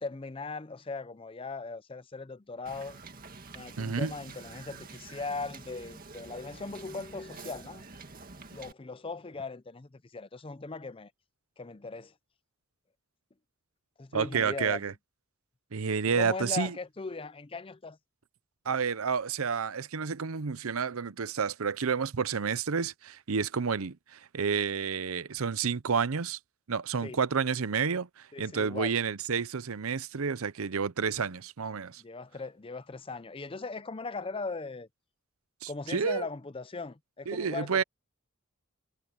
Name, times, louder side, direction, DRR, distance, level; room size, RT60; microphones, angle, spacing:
voice 1, 0.0-3.0 3.5-7.8 8.5-11.1 11.6-12.1 14.0-14.8 16.1-18.0 27.0-27.2 28.3-29.0 32.0-34.9 35.7-37.8, left 3 dB, 25° left, 0.5 m, -39 dB
Wind / Boat Water vehicle, 2.7-8.7, right 4 dB, 40° right, 2.0 m, -48 dB
voice 2, 3.8-4.1 14.1-14.9 15.7-16.7 18.7-26.4 26.7-32.0 35.6-36.3 37.3-37.8, right 6 dB, 75° right, 0.7 m, -30 dB
head